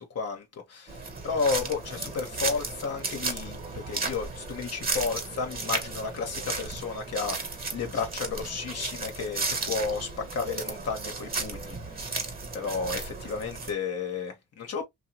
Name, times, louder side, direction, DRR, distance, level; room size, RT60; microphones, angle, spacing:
voice 1, 0.1-12.1 12.5-14.9, left 5 dB, 55° left, 1.0 m, -32 dB
sound 1, 0.9-13.7, right 3 dB, 30° right, 1.2 m, -34 dB
2.7 x 2.2 x 2.8 m
cardioid pair, 90°, 30 cm